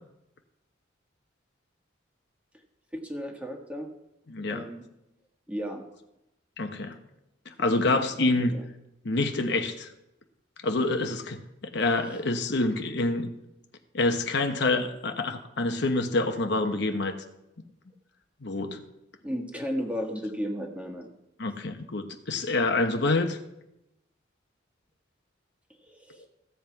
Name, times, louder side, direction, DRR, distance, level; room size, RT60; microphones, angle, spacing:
voice 1, 2.9-3.9 4.5-4.8 5.5-5.8 7.8-8.6 19.2-21.1 25.8-26.3, equal, 5° right, 2 dB, 1.5 m, -34 dB
voice 2, 4.3-4.6 6.6-7.0 7.6-8.5 9.0-9.9 10.6-13.3 13.9-17.1 18.4-18.8 21.4-23.4, left 2 dB, 60° left, 6 dB, 1.0 m, -27 dB
15.5 x 7.7 x 4.6 m, 0.88 s
head